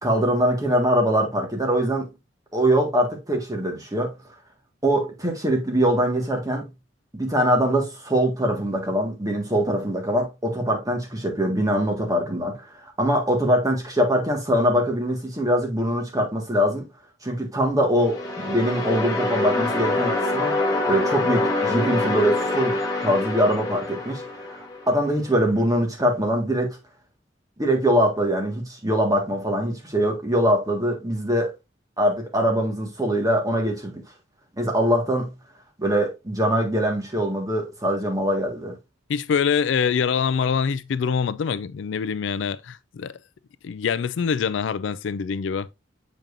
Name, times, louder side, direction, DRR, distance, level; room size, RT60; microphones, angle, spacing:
voice 1, 0.0-2.1 2.5-4.1 4.8-6.7 7.1-16.9 17.2-20.6 20.8-24.2 24.5-24.6 24.9-26.8 27.6-31.5 32.0-34.0 34.6-35.3 35.8-38.8, equal, 20° right, 1.7 m, -23 dB
sound 1, 18.0-25.0, left 2 dB, 20° left, 1.5 m, -25 dB
voice 2, 39.1-43.2 43.6-45.7, left 6 dB, 75° left, 0.4 m, -24 dB
7.4 x 5.2 x 2.6 m
head